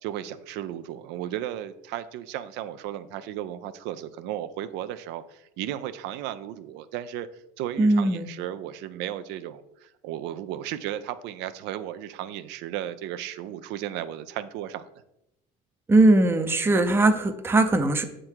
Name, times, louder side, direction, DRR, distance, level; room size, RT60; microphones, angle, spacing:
voice 1, 0.0-7.3 7.6-14.9, right 11 dB, 75° right, 12 dB, 0.5 m, -35 dB
voice 2, 7.8-8.3 15.9-18.0, right 2 dB, 15° right, 8 dB, 0.5 m, -20 dB
6.4 x 3.7 x 4.5 m, 0.86 s
cardioid pair, 130°, 18 cm